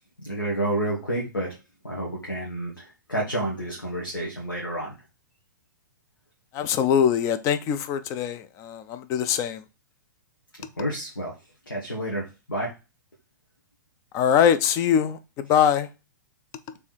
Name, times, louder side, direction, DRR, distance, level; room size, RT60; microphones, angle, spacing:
voice 1, 0.2-1.5 1.8-4.9 10.8-11.3 11.7-12.7, right 1 dB, 80° left, 1.3 m, -29 dB
voice 2, 6.5-9.6 14.1-15.9, left 8 dB, 30° left, 0.5 m, -22 dB
3.5 x 3.2 x 4.2 m
figure-of-eight pair, 105°, 11 cm